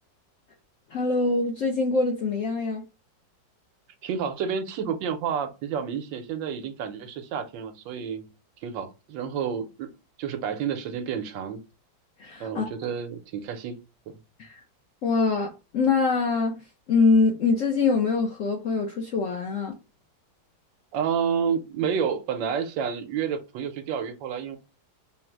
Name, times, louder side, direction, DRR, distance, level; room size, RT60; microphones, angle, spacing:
voice 1, 0.9-2.8 12.2-12.7 14.4-14.6 15.0-16.5 16.9-19.7, left 4 dB, 70° left, 0.7 m, -24 dB
voice 2, 4.0-8.2 8.6-9.9 10.2-11.6 12.4-13.8 14.1-14.2 20.9-24.6, right 7 dB, 80° right, 1.3 m, -30 dB
3.8 x 2.0 x 4.4 m
omnidirectional pair, 2.1 m